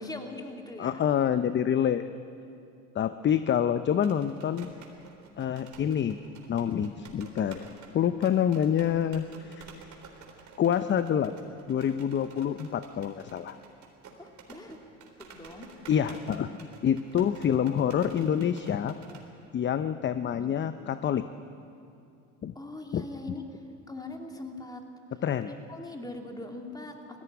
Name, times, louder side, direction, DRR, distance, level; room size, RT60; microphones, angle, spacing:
voice 1, 0.0-1.0 14.2-14.8 15.3-15.7 20.2-20.5 22.5-23.4 23.9-24.8 25.5-27.2, left 2 dB, 10° left, 3 dB, 2.7 m, -41 dB
voice 2, 0.8-2.1 2.9-4.7 5.4-6.2 6.5-7.7 7.9-9.7 10.6-11.3 11.7-13.6 15.9-19.0 19.5-21.3 22.4-22.5 22.9-23.0 25.2-25.5, left 9 dB, 30° left, 12 dB, 0.7 m, -27 dB
sound 1, 3.9-19.3, right 5 dB, 45° right, 3.6 m, -51 dB
18.5 x 15.0 x 9.5 m, 2.6 s
hypercardioid pair, 85°, 38 cm